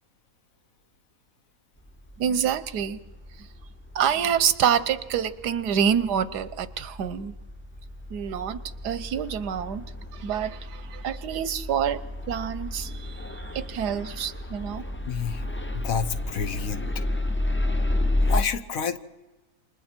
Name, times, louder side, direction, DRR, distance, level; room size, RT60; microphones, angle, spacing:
sound 1, 1.9-18.4, left 1 dB, 15° left, 0.5 m, -32 dB
voice 1, 2.2-3.0 3.4-3.5 3.9-7.3 8.1-8.6 8.8-9.8 10.1-12.0 12.3-14.8, right 8 dB, 90° right, 14 dB, 1.5 m, -27 dB
voice 2, 15.1-15.4 15.7-16.8 18.3-19.0, left 6 dB, 60° left, 10 dB, 1.3 m, -29 dB
28.5 x 25.5 x 4.5 m, 1.1 s
omnidirectional pair, 1.7 m